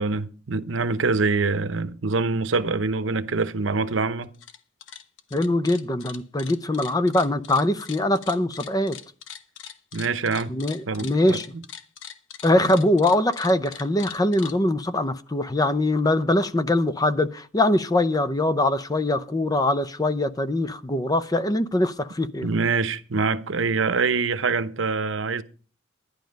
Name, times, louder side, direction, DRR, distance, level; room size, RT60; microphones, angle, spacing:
voice 1, 0.0-4.3 9.9-10.5 10.9-11.4 22.4-25.4, right 4 dB, 80° right, 0.8 m, -25 dB
sound 1, 4.2-4.6 4.8-14.5, left 8 dB, 75° left, 1.1 m, -41 dB
voice 2, 5.3-9.0 10.5-11.5 12.4-22.5, left 1 dB, 20° left, 0.6 m, -22 dB
11.5 x 10.5 x 5.2 m
head